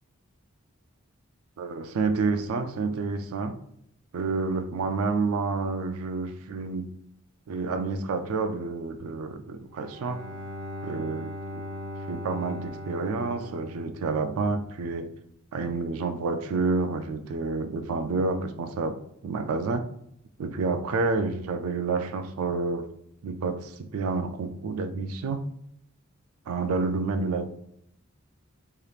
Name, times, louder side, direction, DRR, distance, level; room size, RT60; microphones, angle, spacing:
voice 1, 1.6-3.6 4.1-6.9 7.5-10.3 10.8-11.7 12.1-15.1 15.5-19.9 20.4-22.9 23.2-25.5 26.5-27.5, right 4 dB, 80° right, 0.4 m, -29 dB
Bowed string instrument, 9.7-14.7, left 1 dB, 50° right, 0.9 m, -39 dB
3.2 x 2.9 x 2.4 m
head